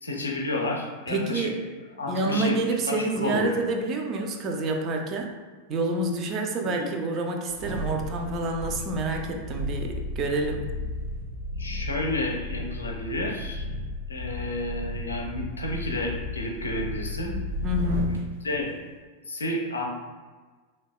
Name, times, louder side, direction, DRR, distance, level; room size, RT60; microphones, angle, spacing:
voice 1, 0.0-1.5 2.0-2.6 2.9-3.5 6.6-6.9 11.6-13.7 14.1-17.4 18.1-18.2 18.4-18.7 19.3-19.9, left 1 dB, 75° left, 0 dB, 0.4 m, -31 dB
voice 2, 1.1-1.6 2.1-5.4 5.7-10.7 17.6-18.4, right 2 dB, 30° right, 2 dB, 0.3 m, -28 dB
sound 1, 7.5-18.2 18.6-18.7, left 2 dB, 75° right, 0.6 m, -34 dB
3.3 x 2.2 x 2.2 m, 1.4 s
figure-of-eight pair, 90°, 0 cm